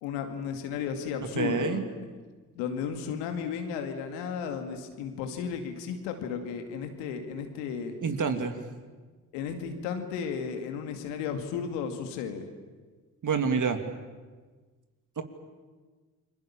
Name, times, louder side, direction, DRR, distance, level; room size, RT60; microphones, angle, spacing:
voice 1, 0.0-2.0 2.6-8.0 9.3-12.5, left 7 dB, 75° left, 6 dB, 2.4 m, -34 dB
voice 2, 1.4-1.8 8.0-8.6 13.2-13.8 15.2-15.3, right 5 dB, 45° right, 7 dB, 2.7 m, -27 dB
29.5 x 22.0 x 7.3 m, 1.4 s
hypercardioid pair, 40°, 42 cm